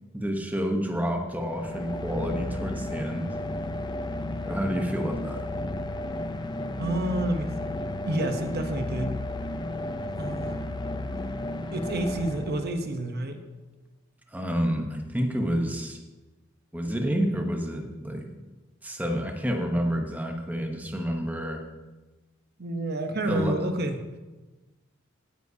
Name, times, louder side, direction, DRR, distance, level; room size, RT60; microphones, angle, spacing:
voice 1, 0.1-3.3 4.4-5.4 14.3-16.0 16.7-18.3 18.8-21.6 23.3-23.6, equal, 10° right, 3 dB, 0.9 m, -29 dB
sound 1, 1.2-13.1, left 1 dB, 20° left, 0.4 m, -33 dB
voice 2, 6.8-7.5 8.0-9.1 10.2-10.7 11.7-13.4 22.6-24.0, right 1 dB, 50° right, 6 dB, 0.8 m, -29 dB
16.5 x 9.6 x 2.7 m, 1.2 s
head